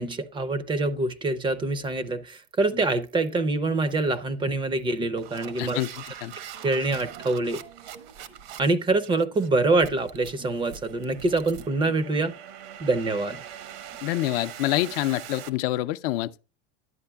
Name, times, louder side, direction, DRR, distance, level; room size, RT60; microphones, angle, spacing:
voice 1, 0.0-5.8 6.6-7.6 8.6-12.3 12.8-13.4, right 2 dB, 15° right, 0.4 m, -25 dB
sound 1, 1.7-1.9 2.3-2.6 3.0-3.4 3.9-4.2 4.8-15.5, right 9 dB, 70° right, 1.0 m, -43 dB
voice 2, 5.6-5.9 6.2-6.3 14.0-16.4, left 16 dB, 65° left, 0.5 m, -26 dB
11.0 x 8.1 x 2.2 m
supercardioid pair, 135°, 32 cm